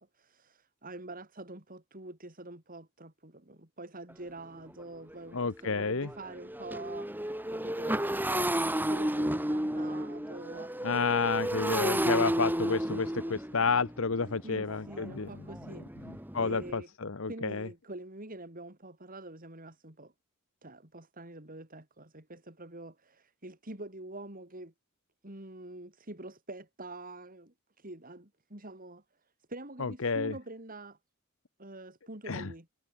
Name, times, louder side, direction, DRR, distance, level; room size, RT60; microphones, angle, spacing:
voice 1, 0.0-10.9 14.4-16.9 17.3-20.1 20.6-24.7 25.2-29.0 29.5-31.0 31.6-32.7, right 2 dB, 40° right, 4.9 m, -46 dB
Motorcycle, 4.1-4.2 4.7-4.8 5.1-16.7, right 1 dB, 10° right, 3.1 m, -32 dB
voice 2, 5.3-6.1 10.8-15.3 16.3-17.7 29.8-30.3 32.3-32.5, left 4 dB, 65° left, 1.0 m, -30 dB
head